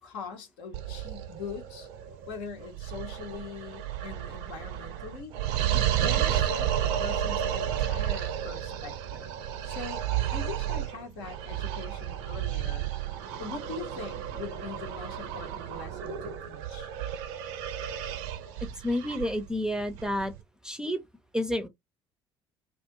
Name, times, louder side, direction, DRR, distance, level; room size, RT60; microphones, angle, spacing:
voice 1, 0.0-1.9 2.3-9.3 9.7-12.9 13.4-16.9, left 5 dB, 70° left, 0.8 m, -42 dB
sound 1, 0.7-20.4, right 10 dB, 65° right, 0.4 m, -32 dB
voice 2, 18.8-20.3 20.6-21.0 21.3-21.7, left 1 dB, 5° right, 0.5 m, -29 dB
2.3 x 2.2 x 2.7 m
figure-of-eight pair, 55°, 13 cm